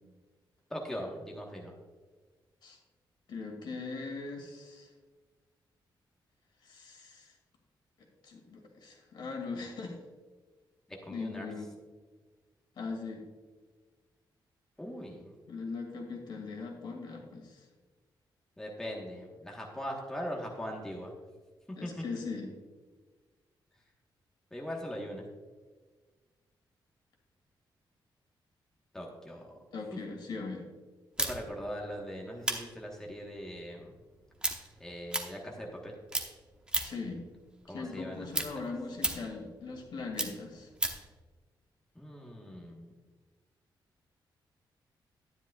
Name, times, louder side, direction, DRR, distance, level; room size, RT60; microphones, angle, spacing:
voice 1, 0.7-1.7 11.0-11.5 14.8-15.3 18.6-21.1 21.8-22.0 24.5-25.3 28.9-29.5 31.2-33.9 34.8-35.9 37.7-38.3 41.9-42.9, equal, 5° left, -1 dB, 1.3 m, -40 dB
voice 2, 3.3-4.9 6.6-7.3 8.2-10.0 11.1-11.7 12.8-13.2 15.5-17.6 21.8-22.5 29.7-30.7 36.8-37.2 37.7-40.7, left 4 dB, 65° left, 1 dB, 2.3 m, -40 dB
sound 1, 31.2-35.8 36.1-37.1 37.5-41.1, right 1 dB, 10° right, 0.9 m, -35 dB
12.0 x 10.5 x 2.4 m, 1.4 s
wide cardioid pair, 155°, 8 cm